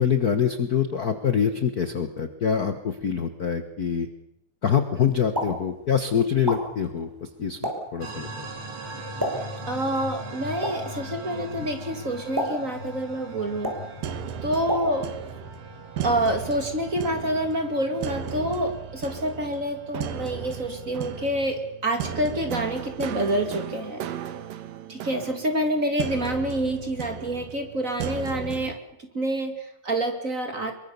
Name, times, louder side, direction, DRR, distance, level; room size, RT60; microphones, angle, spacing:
voice 1, 0.0-4.1 4.6-8.5, left 7 dB, 65° left, 8 dB, 0.9 m, -25 dB
Explosion, 5.1-15.4, equal, 5° right, 4.8 m, -35 dB
sound 1, 8.0-21.3, right 1 dB, 45° right, 3.0 m, -40 dB
voice 2, 9.7-13.7 14.4-15.1 16.0-24.0 24.9-30.7, right 1 dB, 25° right, 6 dB, 2.4 m, -27 dB
sound 2, 14.0-28.8, right 8 dB, 85° right, 3.1 m, -36 dB
24.5 x 22.5 x 7.0 m, 0.77 s
omnidirectional pair, 3.8 m